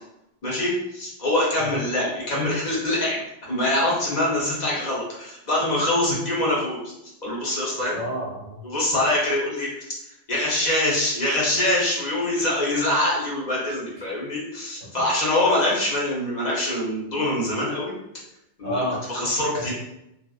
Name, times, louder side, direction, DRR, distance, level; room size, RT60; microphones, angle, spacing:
voice 1, 0.4-3.2 3.5-6.8 7.2-8.0 8.6-9.8 10.3-18.0 18.6-19.7, left 1 dB, 45° left, -5 dB, 0.8 m, -24 dB
voice 2, 7.9-8.6 18.6-19.0 19.5-19.7, equal, 55° right, -7 dB, 0.7 m, -29 dB
2.7 x 2.0 x 2.3 m, 0.83 s
omnidirectional pair, 1.2 m